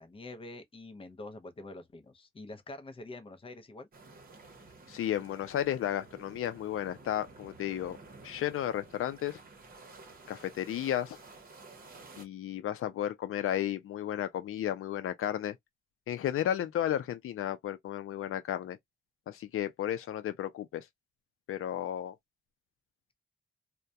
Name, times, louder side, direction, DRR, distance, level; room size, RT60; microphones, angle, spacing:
voice 1, 0.0-3.9, left 2 dB, 25° left, 0.6 m, -46 dB
sound 1, 3.9-12.3, right 3 dB, 45° right, 0.8 m, -53 dB
voice 2, 4.9-8.0 8.2-9.4 10.3-11.2 12.2-15.6 16.1-18.8 19.3-20.9 21.5-22.2, left 11 dB, 90° left, 0.4 m, -33 dB
2.3 x 2.1 x 2.6 m
wide cardioid pair, 120°, 21 cm